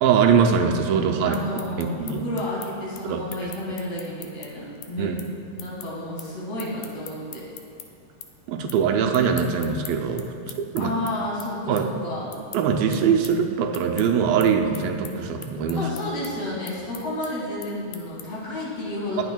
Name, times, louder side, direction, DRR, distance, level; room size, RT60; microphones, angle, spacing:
voice 1, 0.0-1.4 1.8-2.2 3.0-3.5 5.0-5.2 8.5-10.9 11.7-11.9 12.5-15.9, right 6 dB, 80° right, 3 dB, 2.4 m, -22 dB
voice 2, 1.2-5.1 5.6-7.5 10.8-12.3 15.7-19.2, left 1 dB, 50° left, -6 dB, 3.0 m, -31 dB
sound 1, 1.3-7.9 8.2-8.8 9.1-18.5, left 10 dB, 75° left, 2.2 m, -42 dB
19.0 x 8.2 x 2.3 m, 2.5 s
omnidirectional pair, 4.1 m